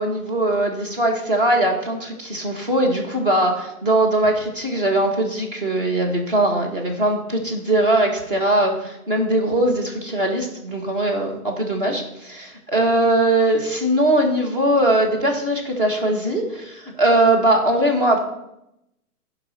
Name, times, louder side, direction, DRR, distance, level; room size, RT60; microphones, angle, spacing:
voice 1, 0.0-18.2, right 1 dB, 35° right, 2 dB, 1.9 m, -20 dB
10.5 x 4.9 x 6.6 m, 0.84 s
hypercardioid pair, 180°, 46 cm